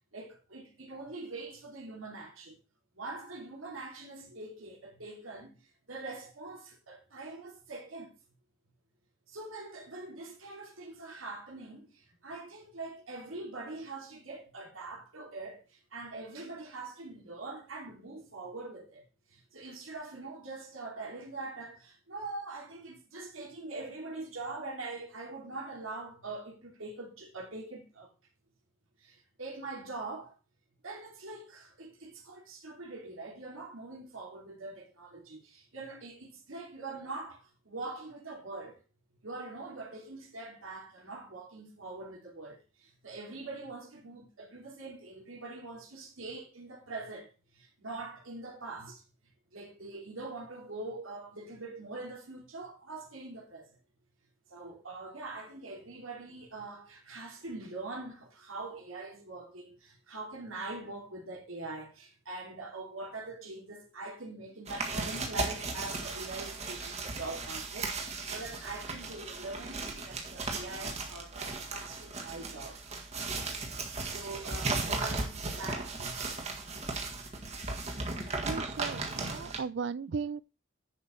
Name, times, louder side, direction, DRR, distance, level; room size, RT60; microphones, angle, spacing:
voice 1, 0.1-2.5 2.9-8.1 9.3-28.1 29.0-30.3 30.8-38.8 39.2-49.0 49.5-53.8 54.5-72.8 74.1-76.3 77.0-77.3, right 3 dB, 85° right, 2.9 m, -43 dB
sound 1, 64.7-79.6, right 3 dB, 35° right, 1.7 m, -36 dB
voice 2, 78.4-80.4, right 5 dB, 60° right, 0.4 m, -36 dB
10.5 x 5.3 x 4.4 m
head